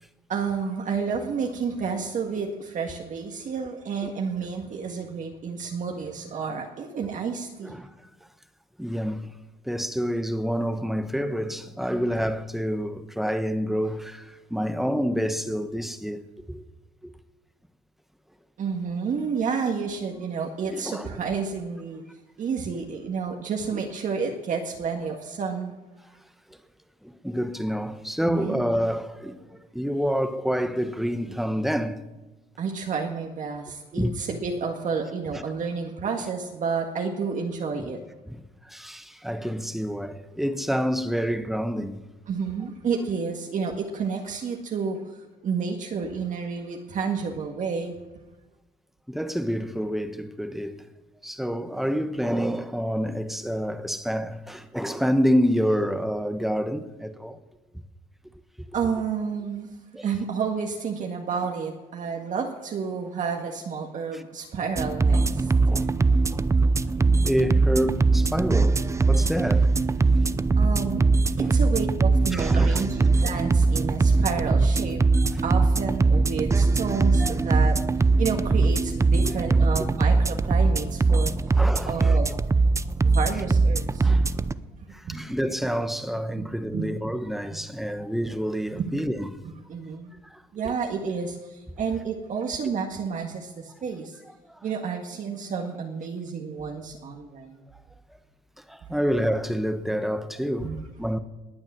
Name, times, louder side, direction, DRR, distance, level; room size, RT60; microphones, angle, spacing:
voice 1, 0.3-7.7 18.6-22.0 22.4-25.7 28.3-28.6 32.6-38.0 42.3-45.0 45.4-47.9 58.7-59.7 60.0-65.5 70.6-71.0 71.4-75.0 75.4-81.3 81.9-82.3 83.0-84.1 85.0-85.2 86.3-86.5 86.7-86.9 87.5-87.6 88.7-89.0 89.4-90.1 90.5-94.2 94.6-97.6 100.6-100.8, right 5 dB, 50° right, 1.8 m, -30 dB
voice 2, 8.8-9.3 9.6-16.6 17.0-17.1 20.7-21.1 23.7-23.8 27.0-32.0 33.9-34.1 38.3-42.0 49.1-50.8 51.2-57.4 59.9-60.1 64.1-64.2 65.7-66.3 67.2-68.8 69.1-69.7 71.4-71.5 72.3-72.9 75.3-75.4 77.2-77.5 79.2-79.6 81.2-82.2 84.0-84.3 84.9-89.3 90.3-90.7 98.7-101.2, equal, ahead, 1.1 m, -28 dB
sound 1, 64.8-84.5, right 3 dB, 15° right, 0.6 m, -21 dB
20.0 x 8.8 x 7.5 m
cardioid pair, 110°, 17 cm